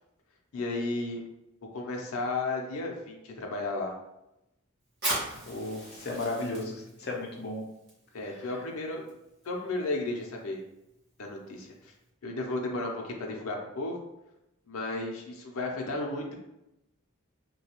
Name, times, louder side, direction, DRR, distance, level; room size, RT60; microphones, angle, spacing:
voice 1, 0.5-1.2 1.7-3.9 8.1-9.1 9.4-10.6 11.2-11.7 12.2-14.0 14.7-16.4, left 2 dB, 85° left, 0 dB, 0.5 m, -33 dB
Fire, 4.9-12.1, right 1 dB, 50° right, 1.5 m, -40 dB
voice 2, 5.5-7.6 8.3-8.5, left 2 dB, 50° left, -1 dB, 0.7 m, -35 dB
3.1 x 2.2 x 2.9 m, 0.86 s
head